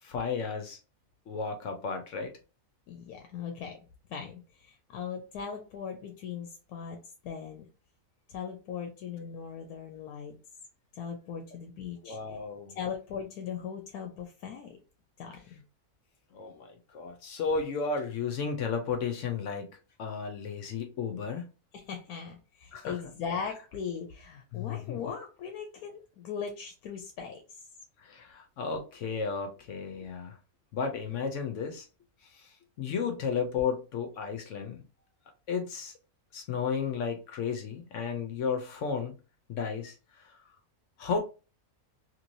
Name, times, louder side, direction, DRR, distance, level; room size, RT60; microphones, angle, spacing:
voice 1, 0.0-0.8 1.3-2.3 12.0-12.8 16.3-21.5 22.7-22.9 24.5-25.0 28.0-30.4 30.7-31.9 32.2-34.8 35.5-35.9 36.3-39.1 39.5-40.4 41.0-41.2, left 5 dB, 65° left, 0.8 m, -33 dB
voice 2, 2.9-3.8 4.1-7.0 7.2-7.7 8.3-10.4 10.9-12.2 12.8-14.8 15.2-15.6 21.7-27.6 32.9-33.0, left 7 dB, 90° left, 1.1 m, -39 dB
3.0 x 2.9 x 2.6 m
omnidirectional pair, 1.5 m